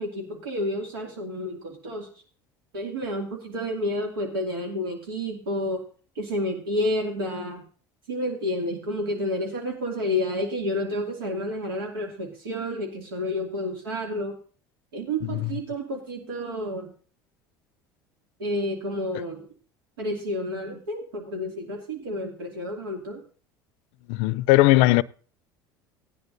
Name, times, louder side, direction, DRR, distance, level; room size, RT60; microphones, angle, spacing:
voice 1, 0.0-2.1 2.7-5.8 6.2-7.6 8.1-14.3 14.9-16.9 18.4-19.5 20.0-23.2, left 1 dB, 85° right, 2.4 m, -30 dB
voice 2, 24.1-25.0, left 18 dB, 65° left, 0.5 m, -19 dB
18.0 x 10.5 x 2.6 m
hypercardioid pair, 75°, 12 cm